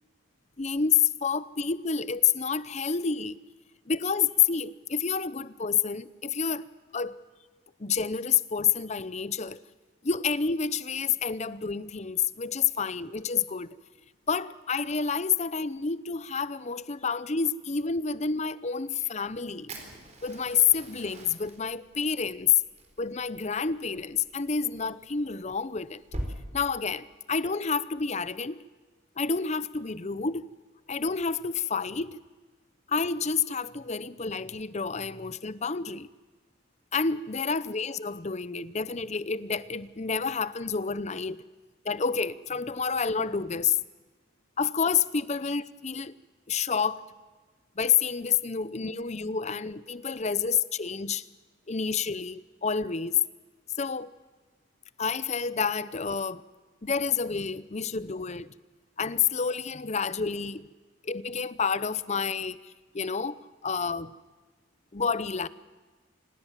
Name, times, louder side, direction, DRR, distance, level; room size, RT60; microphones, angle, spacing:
voice 1, 0.6-3.4 3.9-6.6 6.9-7.2 7.8-9.6 10.0-13.7 14.3-19.7 20.2-22.5 23.0-26.0 26.5-28.6 29.2-30.5 30.9-32.2 32.9-36.1 36.9-41.4 41.8-43.8 44.6-46.1 46.5-47.0 47.8-51.3 51.7-53.2 53.8-54.1 55.0-56.4 56.8-58.5 59.0-60.7 61.0-64.1 64.9-65.5, left 6 dB, 35° left, 0.7 m, -29 dB
Fire, 19.7-26.3, right 1 dB, 35° right, 4.0 m, -43 dB
26.5 x 20.0 x 7.4 m
head